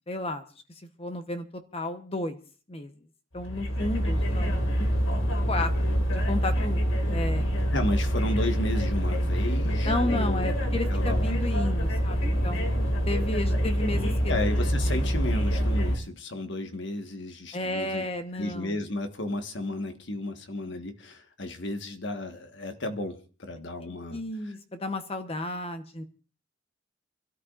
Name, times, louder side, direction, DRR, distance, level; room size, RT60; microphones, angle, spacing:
voice 1, 0.1-0.5 1.0-2.4 2.7-2.9 3.3-4.9 5.5-7.4 9.8-12.7 13.1-14.4 17.5-18.7 24.1-26.0, left 2 dB, 30° left, 1.0 m, -33 dB
sound 1, 3.4-16.0, equal, 80° left, 2.2 m, -26 dB
voice 2, 7.7-11.4 14.3-18.0 18.3-24.5, left 1 dB, 60° left, 1.4 m, -33 dB
29.5 x 13.0 x 2.5 m
head